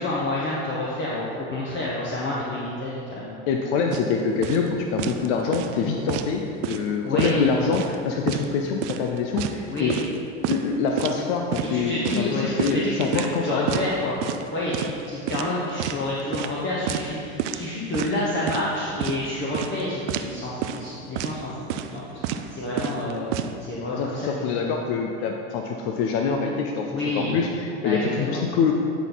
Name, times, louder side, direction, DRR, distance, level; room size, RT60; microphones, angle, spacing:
voice 1, 0.0-3.3 7.0-7.5 9.7-10.0 11.7-14.2 14.5-24.7 26.9-27.4 27.8-28.4, left 1 dB, 30° left, -6 dB, 1.2 m, -29 dB
voice 2, 3.5-10.0 10.5-13.8 23.9-28.7, left 5 dB, 65° left, 2 dB, 0.7 m, -25 dB
sound 1, 3.9-4.1 4.4-4.7 5.0-5.3 5.5-6.3 6.6-6.9 7.2-8.0 8.3-8.5 8.8-10.2 10.4-10.6 11.0-11.2 11.5-11.7 12.1-13.4 13.7-13.9 14.2-14.5 14.7-15.0 15.3-16.0 16.3-16.6 16.9-17.1 17.4-17.7 17.9-18.7 19.0-19.2 19.5-19.8 20.1-20.3 20.6-20.9 21.2-21.4 21.7-22.0 22.2-22.5 22.8-23.5, right 10 dB, 75° right, 0.5 m, -29 dB
9.8 x 4.1 x 3.9 m, 2.6 s
supercardioid pair, 100°, 35 cm